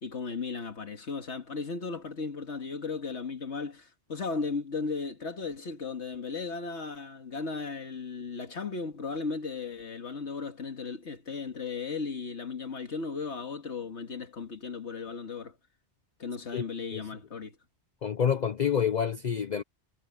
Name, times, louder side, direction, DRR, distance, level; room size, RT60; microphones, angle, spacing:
voice 1, 0.0-15.6 16.2-17.6, left 4 dB, 85° left, 2.1 m, -36 dB
voice 2, 18.0-19.6, left 8 dB, 50° left, 0.7 m, -27 dB
omnidirectional pair, 1.1 m